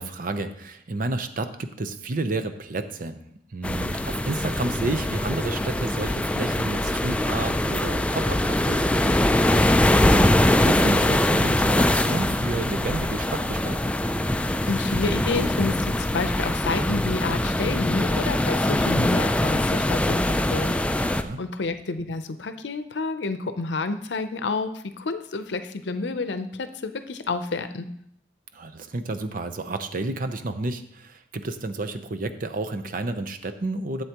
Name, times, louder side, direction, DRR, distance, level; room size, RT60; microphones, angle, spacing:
voice 1, 0.0-3.2 3.5-9.3 10.1-13.9 21.0-21.4 28.5-34.0, right 2 dB, 50° right, 9 dB, 0.7 m, -31 dB
sound 1, 3.6-21.2, left 1 dB, 5° left, 0.3 m, -23 dB
voice 2, 14.7-21.1 21.4-27.9, left 3 dB, 75° left, 10 dB, 0.6 m, -29 dB
11.5 x 7.8 x 3.0 m, 0.70 s
head